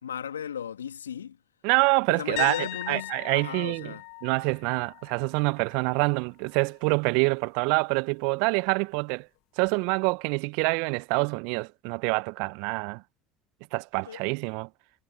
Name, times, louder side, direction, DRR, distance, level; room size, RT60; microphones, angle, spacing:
voice 1, 0.0-1.4 2.1-4.0 14.0-14.2, left 8 dB, 80° left, 3.1 m, -36 dB
voice 2, 1.6-3.9 4.2-9.3 9.6-13.0 13.7-14.7, right 32 dB, 65° right, 1.0 m, -26 dB
sound 1, 2.4-6.1 6.4-6.8 9.7-9.8, left 29 dB, 65° left, 1.8 m, -39 dB
figure-of-eight pair, 65°, 0 cm